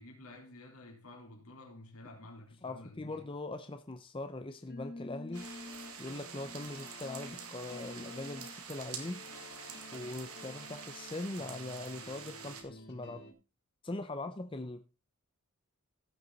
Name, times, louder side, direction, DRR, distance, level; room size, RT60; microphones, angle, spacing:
voice 1, 0.0-3.2, left 1 dB, 75° left, 4.0 m, -51 dB
voice 2, 2.6-5.5 6.0-9.2 9.9-13.2 13.8-14.9, left 2 dB, 25° left, 0.6 m, -41 dB
sound 1, 4.5-13.3, left 2 dB, 50° left, 2.4 m, -50 dB
sound 2, 5.3-12.6, right 6 dB, 75° right, 2.3 m, -47 dB
16.0 x 6.9 x 4.0 m
head